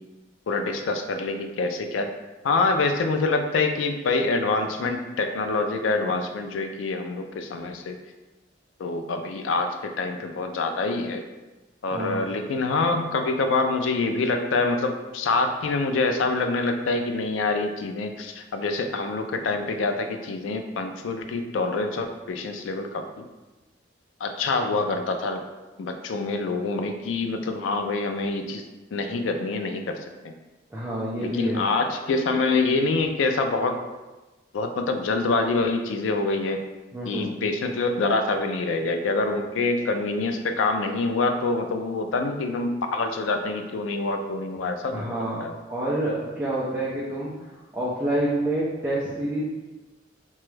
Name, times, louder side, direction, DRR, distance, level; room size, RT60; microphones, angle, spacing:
voice 1, 0.5-2.1 2.4-8.0 8.8-11.2 11.8-23.2 24.2-25.4 25.8-28.6 28.9-29.9 30.2-30.3 31.2-33.8 34.5-36.6 37.1-45.1 45.4-45.5, left 3 dB, 85° left, 6 dB, 0.4 m, -26 dB
voice 2, 11.9-12.3 30.7-31.6 36.9-37.3 44.9-49.4, right 1 dB, 10° right, -8 dB, 0.4 m, -28 dB
2.9 x 2.3 x 3.1 m, 1.1 s
head